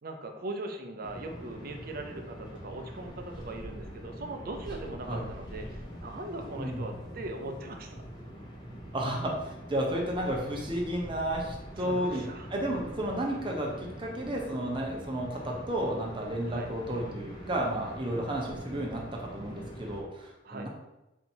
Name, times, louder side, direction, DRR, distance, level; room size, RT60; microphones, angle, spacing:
voice 1, 0.0-8.0 11.8-12.5 16.5-16.7 20.4-20.7, right 2 dB, 55° right, 4 dB, 0.6 m, -40 dB
sound 1, 1.0-20.0, equal, 25° left, 1.0 m, -44 dB
voice 2, 8.9-12.2 12.5-20.7, right 1 dB, 25° right, -1 dB, 0.8 m, -32 dB
4.4 x 2.8 x 4.4 m, 0.96 s
head